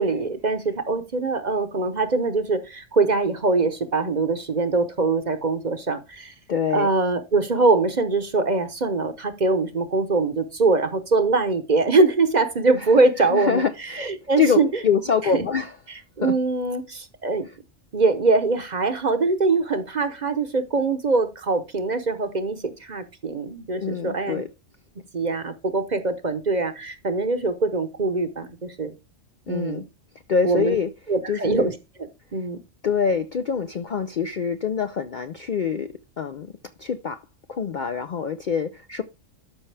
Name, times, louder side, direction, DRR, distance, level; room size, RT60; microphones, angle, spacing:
voice 1, 0.0-6.3 6.7-14.8 15.3-15.5 16.2-17.5 17.9-24.4 25.1-28.9 29.5-29.8 30.4-30.7 31.1-32.6, right 3 dB, 40° right, 0.9 m, -23 dB
voice 2, 6.5-6.9 12.8-12.9 13.2-14.1 14.4-15.7 16.2-16.4 23.8-24.5 29.5-29.9 30.3-30.9 31.3-31.7 32.8-35.9 36.2-36.5 36.8-39.0, left 6 dB, 55° left, 0.5 m, -25 dB
12.5 x 5.5 x 3.3 m
omnidirectional pair, 1.3 m